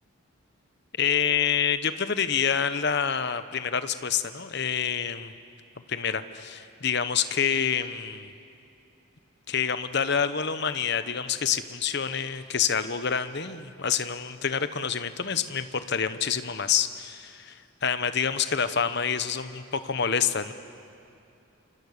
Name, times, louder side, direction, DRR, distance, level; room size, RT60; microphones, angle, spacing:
voice 1, 1.0-5.3 5.9-8.3 9.5-20.5, left 7 dB, 55° left, 11 dB, 1.0 m, -27 dB
28.5 x 27.5 x 6.8 m, 2.7 s
head